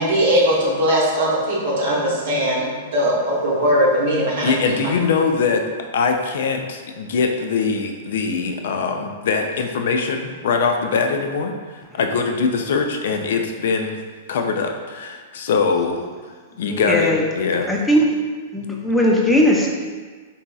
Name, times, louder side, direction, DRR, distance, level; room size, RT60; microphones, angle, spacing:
voice 1, 0.0-4.7, equal, 70° right, -6 dB, 0.7 m, -19 dB
voice 2, 4.4-5.6 5.9-14.0 14.3-16.0 16.6-17.7, left 5 dB, 70° left, 4 dB, 0.4 m, -22 dB
voice 3, 16.7-17.2 17.7-18.1 18.5-19.7, left 1 dB, 5° left, -2 dB, 0.5 m, -18 dB
3.8 x 2.7 x 2.3 m, 1.5 s
hypercardioid pair, 110°, 0 cm